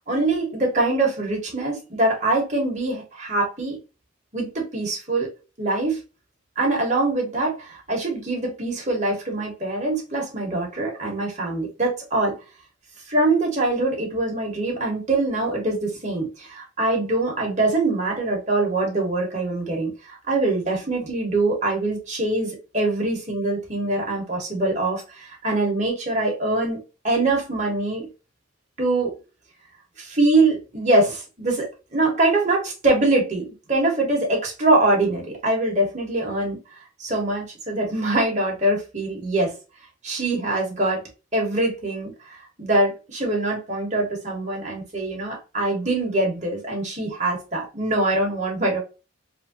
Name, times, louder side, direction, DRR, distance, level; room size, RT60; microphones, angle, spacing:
voice 1, 0.1-3.8 4.3-5.3 5.6-6.0 6.6-12.3 13.1-28.1 28.8-29.1 30.0-36.6 37.0-39.5 40.0-41.0 41.3-48.8, right 2 dB, 35° right, -1 dB, 1.2 m, -23 dB
3.1 x 2.7 x 2.8 m, 0.31 s
head